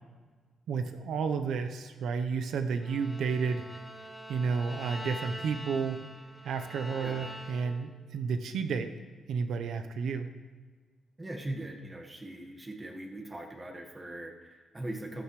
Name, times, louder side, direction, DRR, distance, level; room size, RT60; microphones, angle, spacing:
voice 1, 0.7-3.7 4.3-6.0 6.4-8.9 9.3-10.3, right 5 dB, 75° right, 8 dB, 0.8 m, -31 dB
Bowed string instrument, 2.8-8.0, equal, 10° left, 1.3 m, -44 dB
voice 2, 7.0-7.3 11.2-15.2, right 1 dB, 20° right, 3 dB, 1.6 m, -40 dB
14.0 x 13.0 x 3.2 m, 1.4 s
cardioid pair, 115°, 0 cm